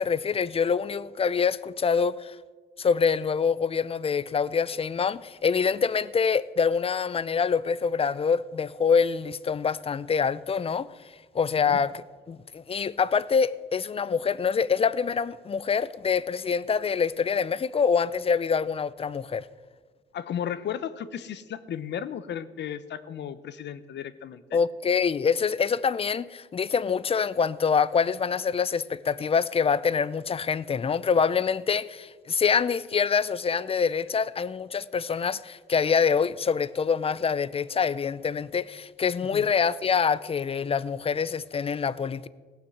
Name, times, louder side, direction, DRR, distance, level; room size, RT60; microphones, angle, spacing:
voice 1, 0.0-2.4 2.8-10.9 11.3-19.4 24.5-42.3, left 6 dB, 30° left, 0.4 m, -25 dB
voice 2, 20.1-24.6 39.3-39.5, left 9 dB, 60° left, 0.8 m, -35 dB
16.0 x 5.9 x 7.9 m
cardioid pair, 90°, 20 cm